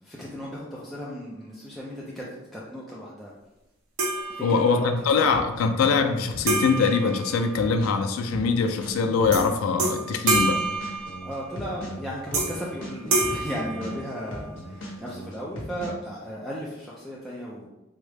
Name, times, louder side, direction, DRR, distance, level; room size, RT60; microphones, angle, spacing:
voice 1, 0.0-2.2 2.5-3.3 4.3-4.9 5.2-5.3 11.2-17.7, equal, ahead, -6 dB, 0.4 m, -35 dB
sound 1, 4.0-5.0 6.5-8.0 9.3-9.5 9.8-11.6 12.3-12.7 13.1-14.5, right 2 dB, 85° right, 0.7 m, -28 dB
voice 2, 4.4-10.6, left 5 dB, 80° left, 6 dB, 0.3 m, -23 dB
sound 2, 5.3-6.0 6.3-10.0 10.3-14.0 14.3-15.9, equal, 65° left, 0.8 m, -38 dB
3.5 x 2.0 x 3.3 m, 0.95 s
head